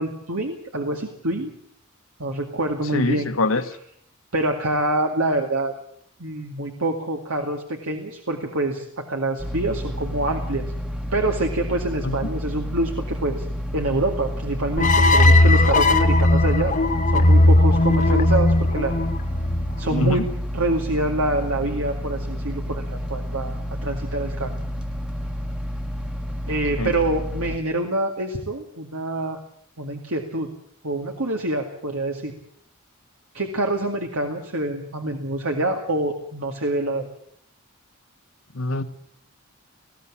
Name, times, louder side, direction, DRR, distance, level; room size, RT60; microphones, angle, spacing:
voice 1, 0.0-1.5 2.2-3.3 4.3-5.7 6.2-10.6 11.1-13.5 13.7-16.8 17.1-18.9 19.8-20.3 20.5-22.8 23.1-24.5 26.5-29.4 29.8-30.5 30.8-32.3 33.3-37.1, right 2 dB, 75° right, 2.2 m, -26 dB
voice 2, 2.9-3.6 12.0-12.3 19.9-20.2 26.8-26.9 38.5-38.8, left 2 dB, 65° left, 1.7 m, -23 dB
sound 1, 9.4-27.6, equal, 5° right, 1.4 m, -30 dB
sound 2, 14.8-20.0, left 1 dB, 40° left, 1.6 m, -17 dB
20.0 x 15.5 x 8.7 m
head